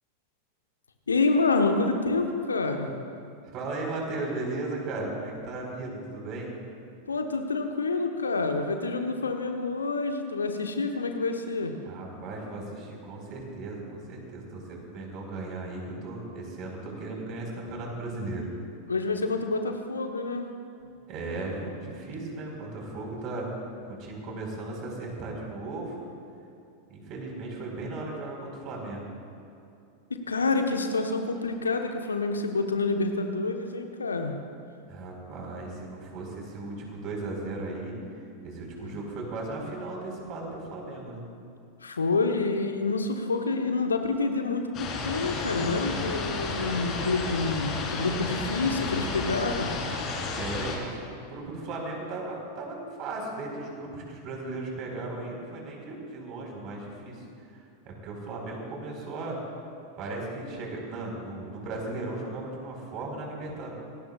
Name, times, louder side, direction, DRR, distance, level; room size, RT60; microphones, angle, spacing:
voice 1, 1.1-2.9 7.1-11.7 18.9-20.5 30.1-34.4 38.8-38.9 41.8-49.7, left 3 dB, 75° left, 5 dB, 1.2 m, -28 dB
voice 2, 3.5-6.5 11.8-18.5 21.1-23.5 23.9-26.0 26.9-29.1 34.9-37.9 38.4-41.2 50.3-57.2 57.5-59.4 60.0-63.8, right 2 dB, 35° right, 0 dB, 4.7 m, -36 dB
sound 1, 44.7-50.8, left 4 dB, 30° left, 3.7 m, -32 dB
25.5 x 19.0 x 2.5 m, 2.6 s
figure-of-eight pair, 90°, 0 cm